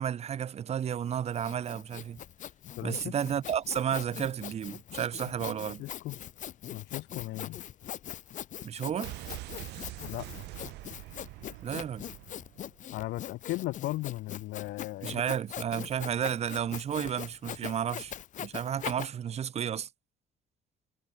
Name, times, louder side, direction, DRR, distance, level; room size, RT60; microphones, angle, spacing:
voice 1, 0.0-2.2 2.8-5.8 8.6-9.1 11.6-12.0 15.0-19.9, right 9 dB, 40° right, 0.7 m, -32 dB
Sawing, 1.0-19.1, left 11 dB, 50° left, 0.6 m, -42 dB
voice 2, 2.8-3.1 5.5-6.2 6.7-7.6 10.0-10.3 12.9-15.2, left 18 dB, 85° left, 1.9 m, -37 dB
sound 1, 9.0-12.8 13.1-13.2, right 19 dB, 85° right, 4.5 m, -44 dB
cardioid pair, 110°, 17 cm